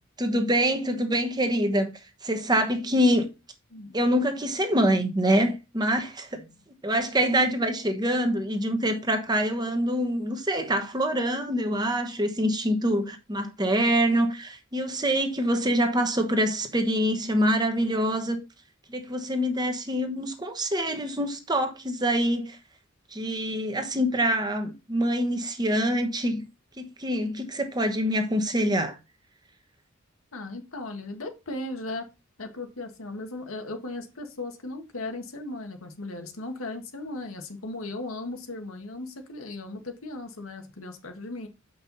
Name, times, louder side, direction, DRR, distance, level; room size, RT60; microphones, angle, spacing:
voice 1, 0.2-1.9 2.2-3.3 3.9-6.4 6.8-18.4 18.9-22.6 23.1-26.5 26.8-29.0, equal, 20° right, 1.1 m, -25 dB
voice 2, 30.3-32.1 32.4-41.5, left 2 dB, 85° left, 1.6 m, -37 dB
7.1 x 5.6 x 4.0 m
head